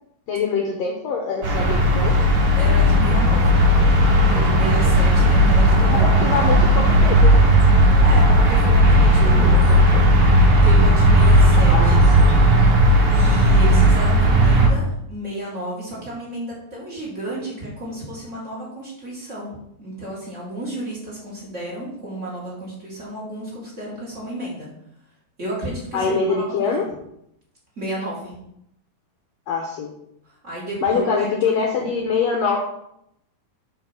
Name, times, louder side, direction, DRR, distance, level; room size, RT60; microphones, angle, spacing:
voice 1, 0.3-2.2 5.8-7.4 9.2-10.0 11.6-12.0 12.3-12.4 25.9-26.9 29.5-29.9 30.8-32.6, left 5 dB, 80° left, 1 dB, 1.5 m, -24 dB
sound 1, 1.4-14.7, equal, 55° right, 1.9 m, -15 dB
voice 2, 2.6-3.6 4.3-6.6 7.9-9.6 10.6-12.1 13.1-24.7 25.4-26.9 27.8-28.4 30.2-31.9, right 1 dB, 30° right, -6 dB, 1.8 m, -32 dB
5.7 x 4.6 x 5.6 m, 0.76 s
omnidirectional pair, 3.9 m